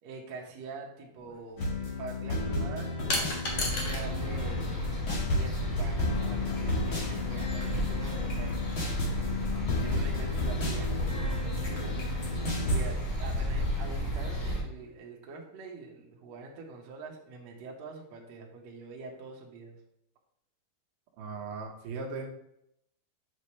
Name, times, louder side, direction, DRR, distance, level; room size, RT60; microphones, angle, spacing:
voice 1, 0.0-1.6 2.0-2.9 3.4-8.6 9.6-12.1 12.6-19.8, right 3 dB, 85° right, -1 dB, 1.5 m, -44 dB
sound 1, 1.2-1.3 3.1-4.1 4.4-5.3, left 2 dB, 85° left, 1.3 m, -33 dB
sound 2, 1.6-12.8, left 2 dB, 60° left, 1.3 m, -33 dB
sound 3, 3.5-14.6, left 1 dB, 25° left, 3.5 m, -33 dB
voice 2, 21.2-22.3, right 4 dB, 70° right, 0 dB, 2.6 m, -38 dB
8.1 x 7.0 x 3.2 m, 0.77 s
omnidirectional pair, 5.3 m